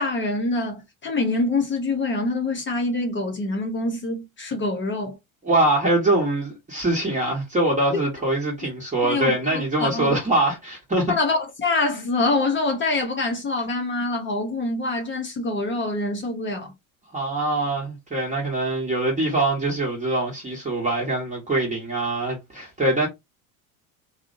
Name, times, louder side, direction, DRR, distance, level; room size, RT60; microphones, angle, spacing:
voice 1, 0.0-5.2 9.1-10.1 11.1-16.7, left 2 dB, 25° left, 0.7 m, -25 dB
voice 2, 5.4-11.1 17.1-23.1, right 2 dB, 15° right, 1.0 m, -23 dB
2.5 x 2.0 x 2.5 m
hypercardioid pair, 85°, 43 cm